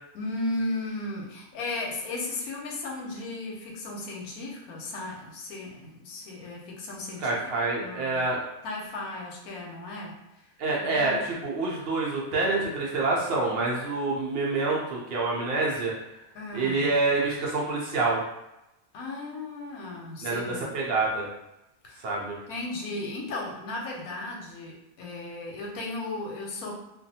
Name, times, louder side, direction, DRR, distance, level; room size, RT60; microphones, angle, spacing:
voice 1, 0.1-8.2 8.6-10.2 10.8-11.2 16.3-16.9 18.9-20.7 21.8-22.1 22.5-26.7, left 2 dB, 85° left, -1 dB, 1.1 m, -35 dB
voice 2, 7.2-8.4 10.6-15.9 16.5-18.2 20.2-21.3 22.0-22.4, right 3 dB, 70° right, -3 dB, 0.5 m, -27 dB
2.5 x 2.3 x 2.7 m, 0.90 s
omnidirectional pair, 1.5 m